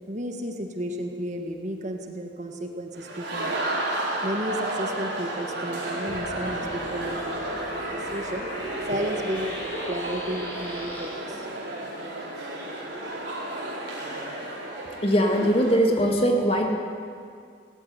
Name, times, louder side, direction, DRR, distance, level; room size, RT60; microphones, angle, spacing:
voice 1, 0.1-9.5 9.8-11.5, equal, 40° right, 4 dB, 1.8 m, -33 dB
sound 1, 2.9-15.7, right 1 dB, 60° right, 4.8 m, -32 dB
sound 2, 6.1-11.1, equal, 15° left, 4.7 m, -39 dB
voice 2, 15.0-16.7, equal, 30° left, 2 dB, 2.3 m, -21 dB
18.0 x 16.0 x 9.8 m, 2.2 s
head